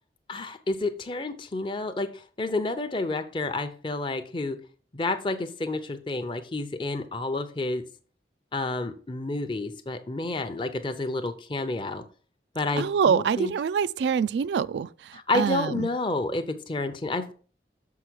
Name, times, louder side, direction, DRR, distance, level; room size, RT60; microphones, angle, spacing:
voice 1, 0.3-4.6 4.9-7.8 8.5-12.0 12.5-13.5 15.1-17.3, left 2 dB, 25° left, 0.6 m, -30 dB
voice 2, 12.8-15.9, right 7 dB, 75° right, 0.3 m, -25 dB
6.6 x 4.7 x 6.2 m
head